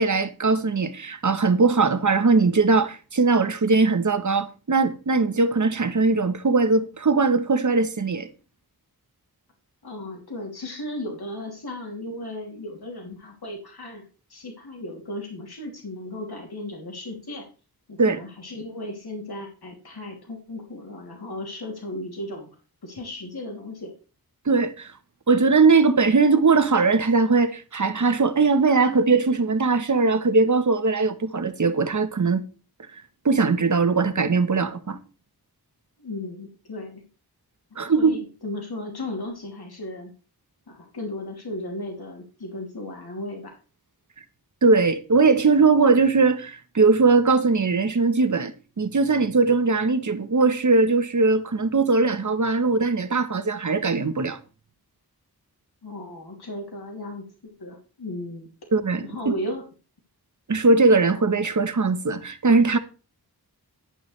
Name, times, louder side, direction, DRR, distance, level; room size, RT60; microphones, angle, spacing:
voice 1, 0.0-8.3 18.0-18.2 24.5-24.9 25.3-32.4 33.2-35.0 37.8-38.2 44.6-54.4 58.7-59.3 60.5-62.8, right 4 dB, 50° right, 1.1 m, -20 dB
voice 2, 9.8-14.0 14.3-17.4 17.9-22.5 22.8-23.9 36.0-37.0 37.7-40.1 40.7-43.5 55.8-58.5 59.0-59.6, left 1 dB, 75° left, 2.8 m, -35 dB
11.0 x 8.8 x 3.3 m
wide cardioid pair, 90°, 38 cm